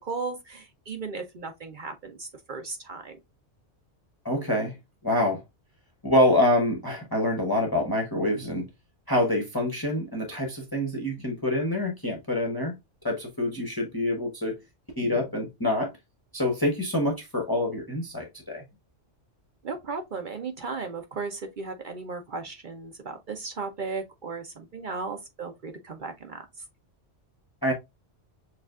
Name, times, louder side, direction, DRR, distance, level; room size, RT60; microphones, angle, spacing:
voice 1, 0.0-3.2 19.6-26.4, right 4 dB, 50° right, 0.7 m, -36 dB
voice 2, 4.2-4.7 5.0-5.4 6.0-8.7 9.1-12.8 13.0-14.6 15.0-15.9 16.3-18.6 27.6-27.7, left 1 dB, 20° left, 0.8 m, -26 dB
6.7 x 2.4 x 2.4 m
omnidirectional pair, 1.3 m